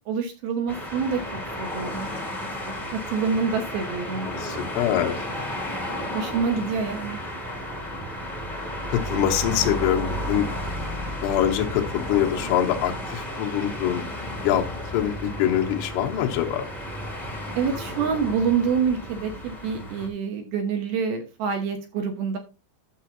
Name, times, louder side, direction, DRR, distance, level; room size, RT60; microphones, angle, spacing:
voice 1, 0.1-1.2 1.6-2.1 2.6-4.3 6.1-7.2 17.6-22.4, right 6 dB, 70° right, 5 dB, 2.6 m, -26 dB
sound 1, 0.7-20.1, equal, ahead, 1.0 m, -33 dB
voice 2, 4.2-5.2 8.9-10.5 11.2-14.0 14.4-14.7 14.9-16.7, left 11 dB, 75° left, 1 dB, 3.0 m, -24 dB
12.0 x 6.8 x 2.8 m, 0.29 s
omnidirectional pair, 5.2 m